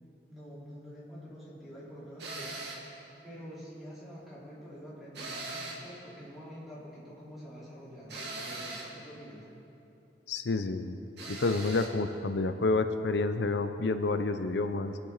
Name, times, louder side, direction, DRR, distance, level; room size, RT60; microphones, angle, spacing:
voice 1, 0.3-2.6 3.2-9.5, equal, ahead, -10 dB, 3.9 m, -47 dB
sound 1, 2.2-2.9 5.1-5.9 8.1-9.0 11.2-12.0, right 2 dB, 75° right, 2.2 m, -40 dB
voice 2, 10.3-11.0 11.3-15.0, left 3 dB, 80° left, 9 dB, 0.6 m, -29 dB
23.5 x 8.9 x 4.1 m, 2.8 s
head